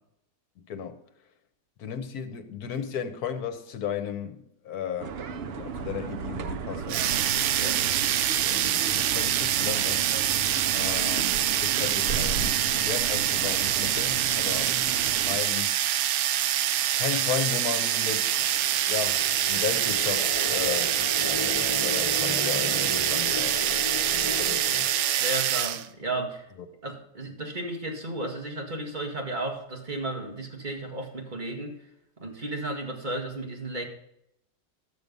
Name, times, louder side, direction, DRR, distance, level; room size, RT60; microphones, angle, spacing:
voice 1, 1.8-5.2 5.5-7.4 8.5-10.1 10.7-14.8 15.2-15.8 16.9-18.5 18.9-21.0 21.7-24.9, left 8 dB, 70° left, 1.4 m, -35 dB
sound 1, 5.0-15.4, right 5 dB, 60° right, 0.6 m, -35 dB
sound 2, 6.9-25.9, right 11 dB, 90° right, 1.2 m, -25 dB
sound 3, 16.7-25.6, left 3 dB, 20° left, 2.1 m, -36 dB
voice 2, 25.2-26.5 26.8-31.7 32.2-33.8, right 2 dB, 30° right, 1.8 m, -33 dB
12.5 x 6.7 x 5.3 m
omnidirectional pair, 1.7 m